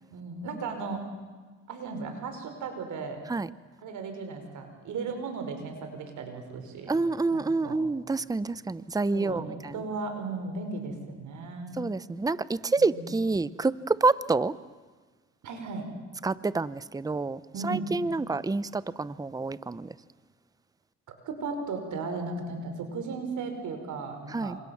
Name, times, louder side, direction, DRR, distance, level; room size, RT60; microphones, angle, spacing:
voice 1, 0.1-1.0 1.7-3.2 3.8-7.0 7.3-7.8 9.1-11.8 12.8-13.1 15.4-15.9 17.5-17.9 21.3-24.6, right 4 dB, 75° right, 6 dB, 5.5 m, -36 dB
voice 2, 6.9-9.7 11.8-14.5 16.2-19.9 24.3-24.6, right 3 dB, 10° right, 17 dB, 0.7 m, -28 dB
28.0 x 26.5 x 7.3 m, 1.4 s
cardioid pair, 90°, 30 cm